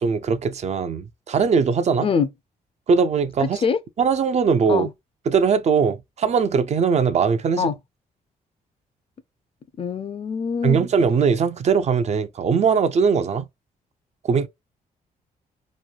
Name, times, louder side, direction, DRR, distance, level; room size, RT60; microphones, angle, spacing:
voice 1, 0.0-2.1 2.9-3.6 4.0-4.9 5.3-7.7 10.6-13.5 14.2-14.5, right 6 dB, 45° right, 0.4 m, -20 dB
voice 2, 3.4-3.8 4.7-4.9 7.6-7.7 9.8-10.8, left 6 dB, 35° left, 0.4 m, -24 dB
3.0 x 2.1 x 2.4 m
cardioid pair, 85°, 15 cm